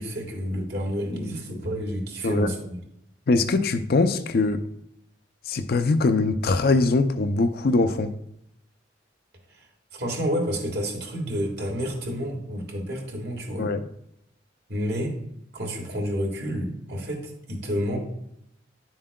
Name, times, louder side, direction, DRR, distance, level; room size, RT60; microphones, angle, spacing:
voice 1, 0.0-2.8 9.5-9.7 9.9-13.7 14.7-15.2 15.5-18.0, equal, 55° right, 1.7 m, -29 dB
voice 2, 3.3-4.6 5.5-8.1 13.6-13.8, left 3 dB, 50° left, 0.4 m, -22 dB
10.5 x 7.3 x 2.2 m
head